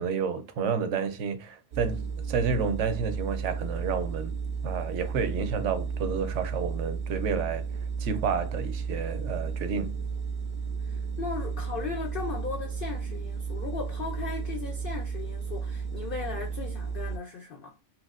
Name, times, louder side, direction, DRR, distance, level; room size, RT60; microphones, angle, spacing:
voice 1, 0.0-4.3 4.6-7.6 8.0-10.0, right 6 dB, 70° right, 0.8 m, -30 dB
sound 1, 1.7-17.2, right 5 dB, 85° right, 0.4 m, -33 dB
voice 2, 10.8-17.8, left 5 dB, 75° left, 0.5 m, -37 dB
3.2 x 2.7 x 2.4 m
omnidirectional pair, 1.4 m